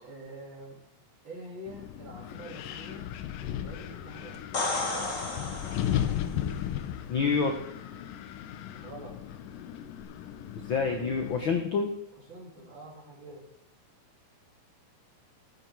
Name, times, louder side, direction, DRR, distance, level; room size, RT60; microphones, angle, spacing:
voice 1, 0.0-0.8 1.2-3.1 3.4-4.8 8.8-9.2 12.3-13.5, right 1 dB, 35° right, -2 dB, 4.0 m, -46 dB
Wind, 1.7-11.6, left 10 dB, 85° left, 2.6 m, -36 dB
sound 1, 4.3-6.3 10.0-10.1, left 2 dB, 35° left, 1.5 m, -33 dB
voice 2, 7.1-7.6 10.7-11.9, left 5 dB, 65° left, 5 dB, 1.2 m, -27 dB
14.5 x 14.0 x 4.6 m, 0.79 s
omnidirectional pair, 3.8 m